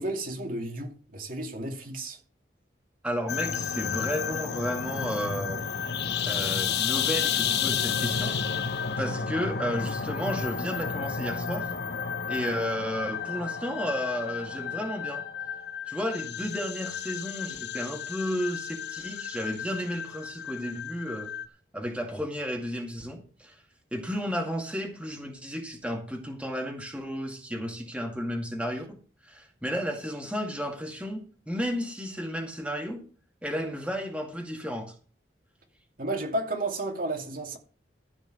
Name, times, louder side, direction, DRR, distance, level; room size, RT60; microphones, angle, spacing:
voice 1, 0.0-2.2 36.0-37.6, right 2 dB, 50° right, 2.5 m, -32 dB
voice 2, 3.0-5.6 6.2-8.3 9.0-11.7 12.3-15.2 15.9-21.3 21.7-23.6 23.9-29.0 29.2-33.0 33.4-34.9, equal, 5° right, 2.2 m, -33 dB
sound 1, 3.3-21.5, left 7 dB, 65° left, 1.1 m, -32 dB
14.5 x 5.2 x 7.7 m
head